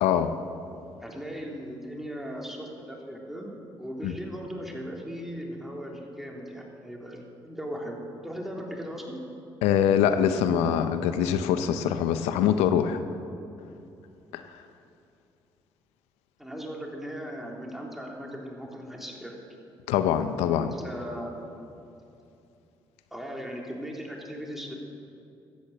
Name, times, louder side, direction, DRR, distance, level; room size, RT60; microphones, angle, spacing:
voice 1, 0.0-0.3 4.0-4.1 9.6-13.0 14.3-14.4 19.9-20.7, left 9 dB, 85° left, 9 dB, 0.6 m, -24 dB
voice 2, 1.0-8.0 8.2-9.2 16.4-19.4 20.5-21.5 23.1-24.8, equal, ahead, -1 dB, 3.4 m, -38 dB
14.0 x 8.8 x 7.7 m, 2.7 s
supercardioid pair, 55°, 11 cm